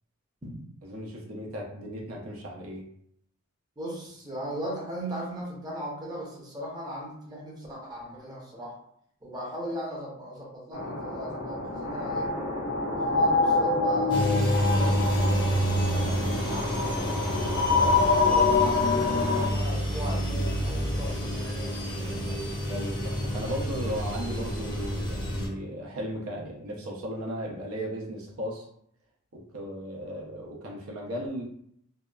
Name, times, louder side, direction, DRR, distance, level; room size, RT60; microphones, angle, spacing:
voice 1, 0.8-2.9 22.7-28.7 29.3-31.4, equal, 70° right, -2 dB, 0.6 m, -36 dB
voice 2, 3.8-8.8 9.2-12.3 12.9-17.2 17.7-22.5, equal, 20° right, -4 dB, 0.6 m, -38 dB
sound 1, 10.7-19.5, left 4 dB, 85° left, 0.6 m, -26 dB
sound 2, 14.1-25.5, equal, 20° left, 0.5 m, -29 dB
2.7 x 2.3 x 2.2 m, 0.70 s
head